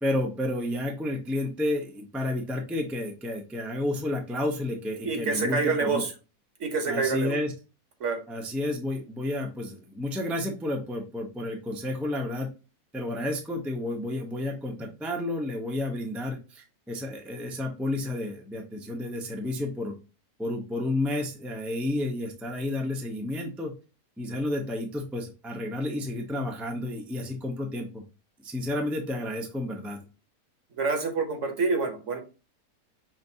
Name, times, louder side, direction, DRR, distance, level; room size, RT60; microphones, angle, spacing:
voice 1, 0.0-6.0 6.9-7.5 8.3-12.5 12.9-19.9 20.4-23.7 24.2-28.0 28.4-30.0, left 1 dB, ahead, 1 dB, 0.5 m, -31 dB
voice 2, 5.0-6.1 6.6-7.3 8.0-8.2 30.8-32.2, right 4 dB, 55° right, 4 dB, 1.3 m, -27 dB
5.8 x 2.6 x 2.7 m, 0.32 s
omnidirectional pair, 1.5 m